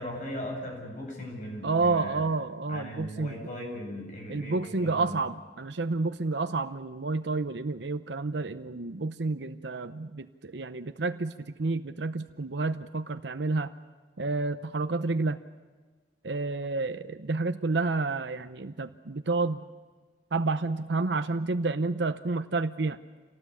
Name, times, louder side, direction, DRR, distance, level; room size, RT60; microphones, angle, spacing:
voice 1, 0.0-2.2 2.7-5.2, left 1 dB, 45° left, 0 dB, 7.3 m, -38 dB
voice 2, 1.6-3.4 4.3-11.3 11.6-13.7 14.2-15.4 16.2-19.6 20.3-23.0, right 3 dB, 75° right, 9 dB, 0.8 m, -30 dB
27.0 x 18.5 x 8.5 m, 1.4 s
head